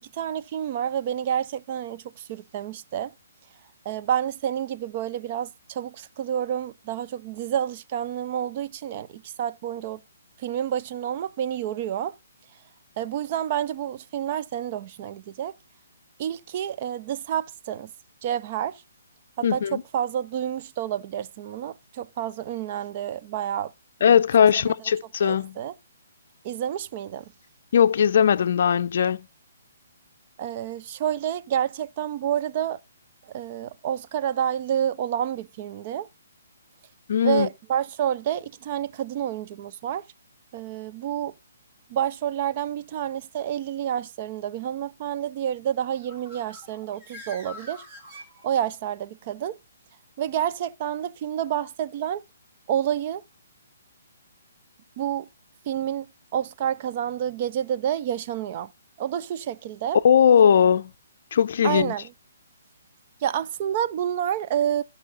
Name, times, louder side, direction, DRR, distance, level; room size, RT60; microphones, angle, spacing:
voice 1, 0.1-3.1 3.9-10.0 10.4-12.1 13.0-15.5 16.2-17.9 18.2-18.8 19.4-23.7 24.4-24.7 25.2-25.7 26.4-27.2 30.4-32.8 33.3-36.1 37.2-40.0 40.5-41.3 41.9-47.8 48.4-49.6 50.2-52.2 52.7-53.2 55.0-55.3 55.7-56.1 56.3-58.7 59.0-60.0 61.6-62.1 63.2-64.8, right 10 dB, 35° right, 0.4 m, -29 dB
voice 2, 19.4-19.8 24.0-25.6 27.7-29.3 37.1-37.5 60.0-60.9 61.3-61.9, left 8 dB, 50° left, 0.6 m, -19 dB
Bird, 45.8-48.9, left 1 dB, 15° right, 1.8 m, -45 dB
15.5 x 5.6 x 3.9 m
hypercardioid pair, 160°, 0 cm